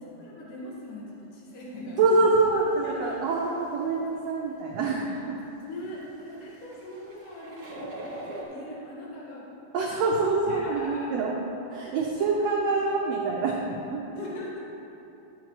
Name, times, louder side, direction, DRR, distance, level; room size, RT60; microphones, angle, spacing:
voice 1, 0.0-2.2 2.8-3.3 5.0-5.3 5.6-9.5 10.5-11.3 12.2-12.3 12.8-13.0 14.0-14.7, left 1 dB, 65° left, -6 dB, 3.1 m, -40 dB
sound 1, 1.7-1.8 2.3-4.3 5.0-5.2 5.6-5.7 5.9-6.0 6.3-8.4, right 1 dB, 45° right, 2.3 m, -43 dB
voice 2, 2.0-5.4 9.7-11.4 11.7-14.0, right 3 dB, 80° right, -3 dB, 1.5 m, -25 dB
13.5 x 7.3 x 3.0 m, 2.9 s
omnidirectional pair, 4.0 m